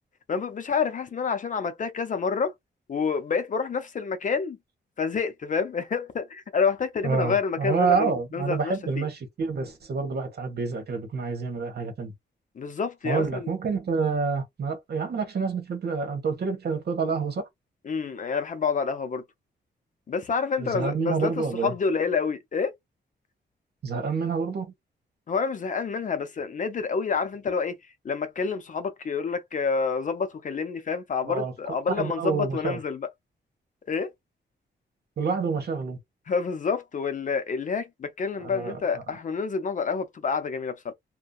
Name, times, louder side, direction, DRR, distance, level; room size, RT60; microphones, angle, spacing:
voice 1, 0.3-2.5 2.9-4.6 5.0-9.1 12.6-13.5 17.8-19.2 20.1-22.7 25.3-27.8 28.0-33.1 33.9-34.1 36.3-40.9, left 5 dB, 45° left, 0.6 m, -28 dB
voice 2, 7.0-12.1 13.0-17.5 20.6-21.7 23.8-24.7 31.2-32.8 35.2-36.0 38.4-39.0, right 5 dB, 60° right, 1.2 m, -28 dB
2.6 x 2.2 x 2.3 m
wide cardioid pair, 145°, 19 cm